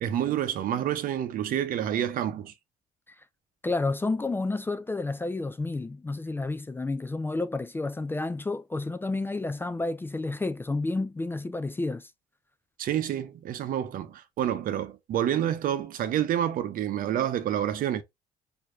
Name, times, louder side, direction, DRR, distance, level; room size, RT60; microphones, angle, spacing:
voice 1, 0.0-2.5 12.8-18.0, right 10 dB, 65° right, 0.7 m, -28 dB
voice 2, 3.6-12.1, left 3 dB, 15° left, 0.3 m, -30 dB
4.6 x 2.7 x 2.5 m
supercardioid pair, 80°, 15 cm